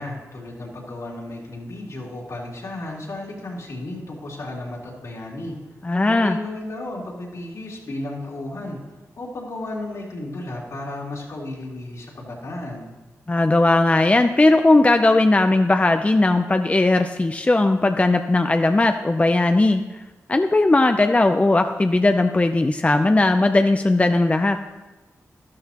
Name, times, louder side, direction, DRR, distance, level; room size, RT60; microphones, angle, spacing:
voice 1, 0.0-5.6 6.1-8.8 9.2-12.9, left 2 dB, 70° left, -4 dB, 3.2 m, -33 dB
voice 2, 5.8-6.4 13.3-19.9 20.3-24.6, left 2 dB, 25° left, 7 dB, 0.5 m, -18 dB
12.5 x 12.5 x 3.0 m, 1.1 s
cardioid pair, 55°, 6 cm